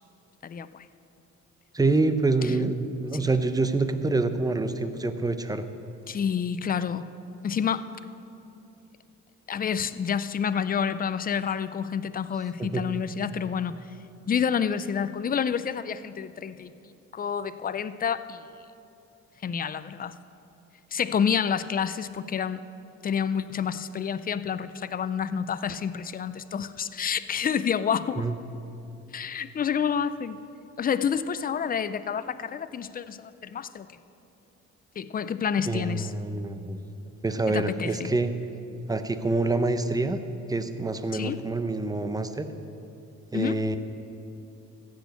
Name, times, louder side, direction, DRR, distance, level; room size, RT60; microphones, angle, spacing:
voice 1, 0.4-0.9 2.4-2.5 3.2-3.3 6.1-7.1 7.4-7.9 9.5-13.8 14.3-16.7 17.1-18.4 19.4-20.1 20.9-22.6 23.0-28.3 29.1-30.4 30.8-33.9 35.0-36.1 37.5-38.1 41.1-41.4 43.3-43.6, left 7 dB, 30° left, 13 dB, 0.5 m, -29 dB
voice 2, 1.7-5.6 12.6-12.9 28.2-28.3 35.7-36.8 37.2-38.3 38.9-40.2 40.5-42.5 43.3-43.8, right 3 dB, 10° right, 10 dB, 0.7 m, -26 dB
14.5 x 6.5 x 8.2 m, 2.8 s
cardioid pair, 90°, 30 cm